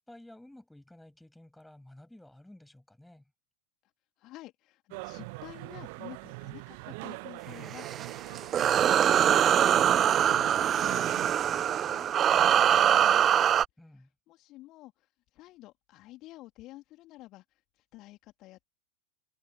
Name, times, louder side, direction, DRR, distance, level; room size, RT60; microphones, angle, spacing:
voice 1, 0.0-3.2 13.8-14.1, left 1 dB, 5° left, 7.5 m, -53 dB
voice 2, 4.2-13.4 14.0-18.7, left 17 dB, 35° left, 2.7 m, -51 dB
sound 1, 4.9-11.3, right 29 dB, 45° right, 1.0 m, -42 dB
sound 2, 7.6-13.6, right 9 dB, 25° right, 0.5 m, -23 dB
open air
figure-of-eight pair, 90°, 0 cm